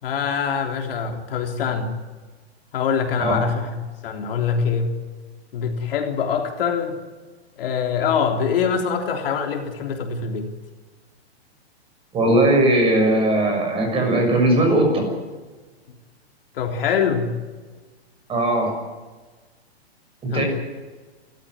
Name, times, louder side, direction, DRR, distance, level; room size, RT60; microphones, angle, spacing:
voice 1, 0.0-1.9 2.7-3.7 4.0-4.9 5.5-7.0 7.6-10.5 16.5-17.3 20.3-20.4, left 6 dB, 60° left, 3 dB, 3.7 m, -24 dB
voice 2, 12.1-15.1 18.3-18.7 20.2-20.4, right 1 dB, 15° right, 3 dB, 6.7 m, -19 dB
28.5 x 14.5 x 9.7 m, 1.3 s
hypercardioid pair, 155°, 32 cm